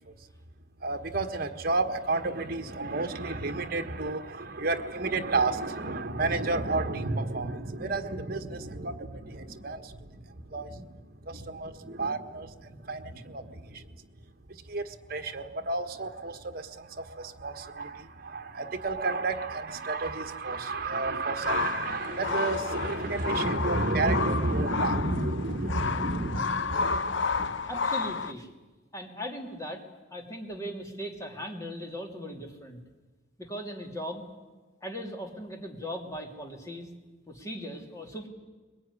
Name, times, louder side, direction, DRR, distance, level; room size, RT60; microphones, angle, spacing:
voice 1, 0.8-13.8 14.5-27.5, right 3 dB, 50° right, 7 dB, 1.5 m, -31 dB
sound 1, 21.4-28.3, left 5 dB, 80° left, 0.8 m, -31 dB
voice 2, 27.7-28.5 28.9-29.8 30.1-32.8 33.4-34.2 34.8-36.9 37.3-38.3, equal, 15° left, 3 dB, 2.9 m, -38 dB
22.5 x 20.5 x 9.8 m, 1.3 s
head